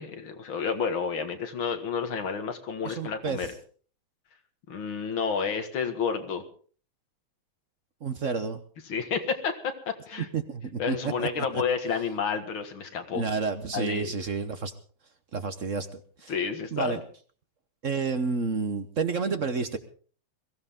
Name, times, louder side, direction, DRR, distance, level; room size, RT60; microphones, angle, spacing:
voice 1, 0.0-3.5 4.7-6.4 8.9-10.3 10.8-13.2 13.7-14.2 16.3-17.0, left 6 dB, 85° left, 6 dB, 2.6 m, -30 dB
voice 2, 2.8-3.5 8.0-8.6 10.3-11.3 11.5-11.6 13.1-14.7 15.3-16.3 16.7-17.0 17.8-19.8, right 5 dB, 45° right, 9 dB, 1.2 m, -30 dB
22.0 x 16.0 x 3.7 m, 0.43 s
omnidirectional pair, 2.2 m